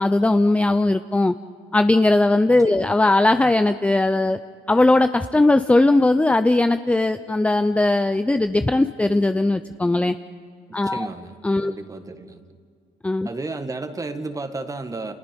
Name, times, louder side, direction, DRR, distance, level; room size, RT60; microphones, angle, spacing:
voice 1, 0.0-1.3 1.7-4.4 4.7-10.1 10.7-11.1 11.4-11.7 13.0-13.3, left 2 dB, 5° left, 9 dB, 0.6 m, -19 dB
voice 2, 10.7-11.3 11.6-12.4 13.2-15.1, right 3 dB, 20° right, 8 dB, 1.7 m, -32 dB
29.5 x 29.0 x 5.4 m, 2.2 s
cardioid pair, 110°, 17 cm